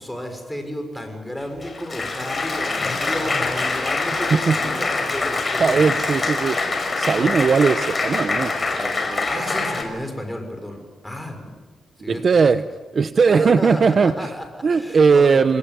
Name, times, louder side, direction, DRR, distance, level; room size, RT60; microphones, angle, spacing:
voice 1, 0.0-6.2 7.1-7.4 9.3-11.5 12.0-12.2 13.3-15.4, equal, 5° left, 5 dB, 6.5 m, -32 dB
Applause, 1.4-9.8, left 3 dB, 30° left, 5.9 m, -24 dB
voice 2, 5.6-9.3 12.1-12.6 12.9-14.3 14.6-15.6, right 5 dB, 50° right, 12 dB, 0.9 m, -19 dB
27.5 x 20.5 x 9.4 m, 1.3 s
cardioid pair, 90°, 0 cm